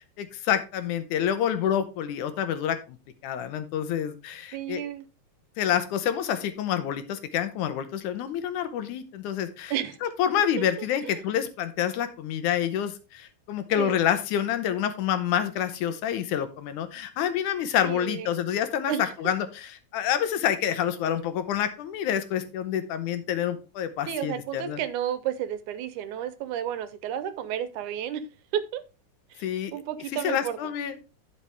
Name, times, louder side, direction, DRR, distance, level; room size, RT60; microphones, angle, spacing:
voice 1, 0.2-3.0 3.2-4.8 5.6-9.7 10.0-24.8 29.4-29.7 30.2-31.0, left 10 dB, 80° left, 10 dB, 2.3 m, -28 dB
voice 2, 4.5-5.1 9.7-10.0 11.0-11.2 13.8-14.0 17.8-18.4 18.9-19.1 24.1-28.2 28.5-28.8 29.3-30.6, right 10 dB, 75° right, 13 dB, 2.1 m, -32 dB
11.5 x 5.7 x 3.4 m, 0.30 s
omnidirectional pair, 3.6 m